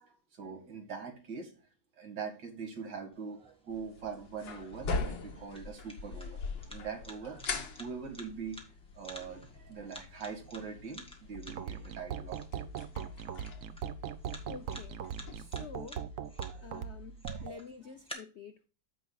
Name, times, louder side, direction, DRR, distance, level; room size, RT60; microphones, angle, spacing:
voice 1, 0.0-1.5 1.9-8.6 8.9-12.6 16.4-16.8 17.3-17.5, right 6 dB, 75° right, 4 dB, 2.6 m, -43 dB
sound 1, 3.1-18.1, equal, 5° left, 1.6 m, -53 dB
sound 2, 3.7-15.4, left 4 dB, 85° left, 2.0 m, -42 dB
sound 3, 11.3-17.6, right 8 dB, 60° right, 0.9 m, -40 dB
voice 2, 14.5-15.0 15.3-16.0 16.6-18.6, left 5 dB, 65° left, 8 dB, 0.6 m, -48 dB
14.5 x 5.3 x 2.3 m, 0.34 s
omnidirectional pair, 1.9 m